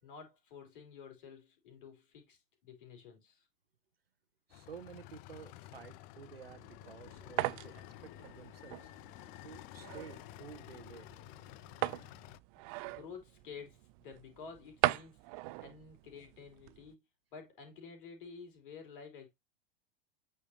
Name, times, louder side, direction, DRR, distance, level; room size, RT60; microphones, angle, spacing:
voice 1, 0.0-3.5 12.8-15.2 15.6-17.0 17.3-19.3, left 5 dB, 60° left, 3.4 m, -51 dB
sound 1, 4.5-12.4, left 15 dB, 30° left, 0.4 m, -52 dB
voice 2, 4.5-8.9 9.4-11.1, right 7 dB, 80° right, 0.9 m, -52 dB
sound 2, 6.5-16.9, right 19 dB, 40° right, 0.5 m, -40 dB
8.6 x 4.6 x 2.8 m
figure-of-eight pair, 85°, 29 cm